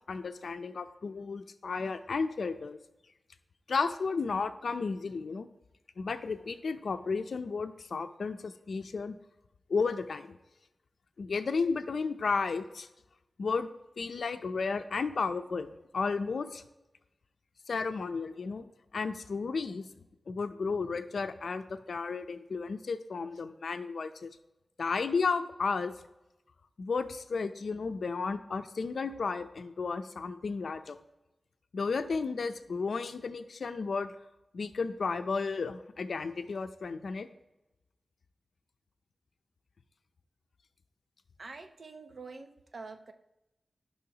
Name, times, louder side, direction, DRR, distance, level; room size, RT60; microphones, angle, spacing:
voice 1, 0.1-2.8 3.7-5.5 6.0-9.2 9.7-10.3 11.2-12.9 13.4-13.7 14.0-15.7 15.9-16.6 17.7-18.7 18.9-19.8 20.3-24.3 24.8-25.9 26.8-31.0 31.7-34.1 34.5-37.3, left 4 dB, 70° left, 9 dB, 0.5 m, -33 dB
voice 2, 41.4-43.1, right 4 dB, 55° right, 6 dB, 0.7 m, -46 dB
15.0 x 5.6 x 2.9 m, 0.97 s
wide cardioid pair, 130°, 0 cm